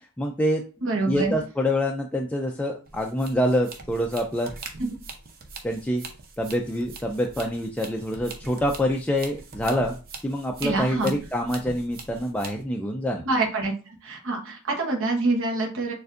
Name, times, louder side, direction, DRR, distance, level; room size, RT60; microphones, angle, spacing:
voice 1, 0.0-0.6 1.1-4.5 5.6-6.0 6.4-10.0 10.2-13.2, equal, 5° left, 1 dB, 0.3 m, -26 dB
voice 2, 0.8-1.4 4.8-4.9 10.6-11.1 13.2-15.9, right 2 dB, 65° right, 1 dB, 1.0 m, -26 dB
sound 1, 2.9-12.6, right 3 dB, 45° right, 0.7 m, -42 dB
6.5 x 2.6 x 2.5 m, 0.34 s
head